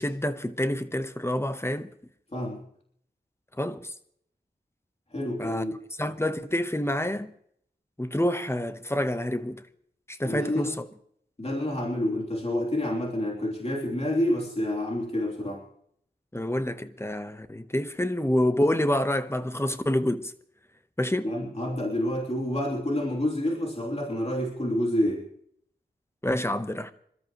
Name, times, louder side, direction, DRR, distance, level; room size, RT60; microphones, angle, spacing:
voice 1, 0.0-1.9 3.6-3.9 5.4-5.6 6.0-7.3 8.0-9.6 10.1-10.9 16.3-20.3 21.0-21.3 26.2-26.9, left 1 dB, 15° left, 1.0 m, -27 dB
voice 2, 2.3-2.6 5.1-5.8 10.2-10.7 11.4-15.6 21.2-25.2, left 1 dB, 35° left, 3.2 m, -28 dB
27.0 x 13.0 x 3.1 m
wide cardioid pair, 65°, 18 cm